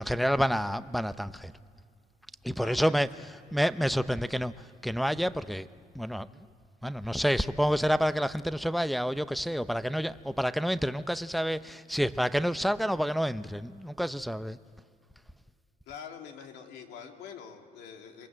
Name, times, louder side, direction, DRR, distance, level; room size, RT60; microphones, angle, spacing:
voice 1, 0.0-1.5 2.4-3.1 3.5-5.7 5.9-6.3 6.8-14.6, equal, ahead, 12 dB, 0.7 m, -28 dB
voice 2, 2.6-3.2 15.9-18.3, left 7 dB, 85° left, 3 dB, 2.9 m, -45 dB
27.0 x 22.5 x 7.7 m, 2.3 s
cardioid pair, 110°, 17 cm